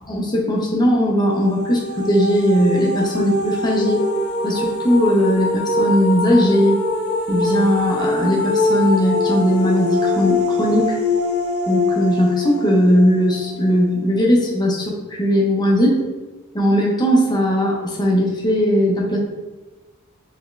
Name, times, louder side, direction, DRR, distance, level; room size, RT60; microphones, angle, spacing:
voice 1, 0.1-4.0 4.4-6.8 7.3-11.0 11.7-16.0 16.5-19.2, equal, 20° left, -2 dB, 0.8 m, -18 dB
sound 1, 1.3-14.1, left 2 dB, 80° left, 0.9 m, -23 dB
4.4 x 3.5 x 3.3 m, 1.2 s
head